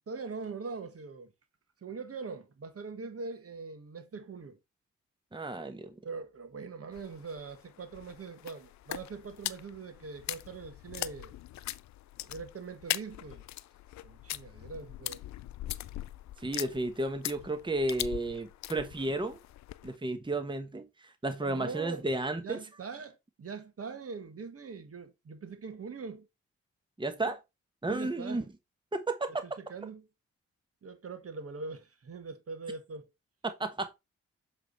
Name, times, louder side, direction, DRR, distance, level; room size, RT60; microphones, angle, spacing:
voice 1, 0.1-1.3 1.8-4.6 6.0-11.3 12.3-13.4 14.0-15.2 16.4-16.5 21.4-22.0 22.4-26.3 27.8-28.5 29.4-30.1 30.8-33.1, right 4 dB, 50° right, 1.4 m, -42 dB
voice 2, 5.3-5.9 16.4-19.4 19.8-22.6 27.0-27.4 27.8-28.4 28.9-29.3 33.4-34.0, right 2 dB, 15° right, 1.1 m, -33 dB
sound 1, 6.9-20.0, left 14 dB, 65° left, 0.4 m, -41 dB
7.5 x 3.5 x 4.0 m
supercardioid pair, 45°, 30 cm